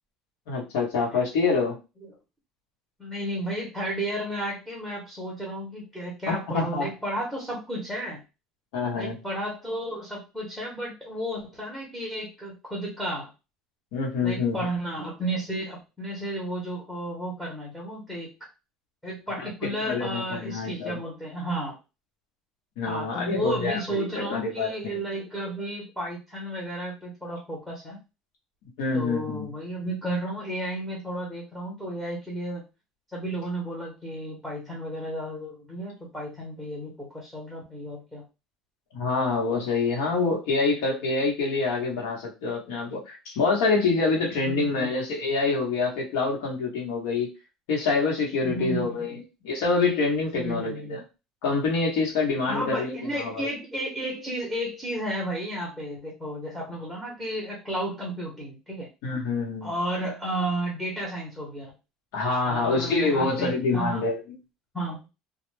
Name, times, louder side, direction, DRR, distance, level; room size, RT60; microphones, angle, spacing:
voice 1, 0.5-1.8 6.3-6.9 8.7-9.1 13.9-14.7 19.6-20.9 22.8-24.9 28.8-29.5 38.9-47.3 47.7-51.0 51.4-53.5 59.0-59.7 62.1-64.2, left 4 dB, 80° left, -2 dB, 1.0 m, -26 dB
voice 2, 3.0-8.2 8.9-13.3 14.2-18.3 19.0-21.8 22.8-28.0 28.9-32.6 33.1-38.3 44.4-44.9 48.4-49.0 50.3-51.0 52.5-58.9 59.6-61.7 62.4-64.0 64.7-65.1, right 1 dB, ahead, -4 dB, 0.8 m, -33 dB
2.2 x 2.1 x 3.2 m, 0.28 s
cardioid pair, 145°, 0 cm